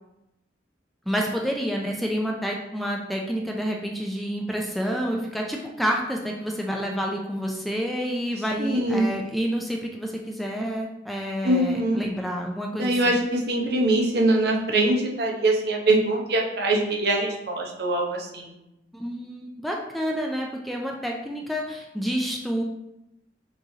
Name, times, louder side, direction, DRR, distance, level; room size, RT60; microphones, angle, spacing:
voice 1, 1.1-13.2 18.9-22.6, equal, ahead, 0 dB, 0.4 m, -29 dB
voice 2, 8.6-9.1 11.4-12.0 12.7-18.6, right 2 dB, 60° right, -1 dB, 0.9 m, -23 dB
6.1 x 3.2 x 2.7 m, 0.90 s
head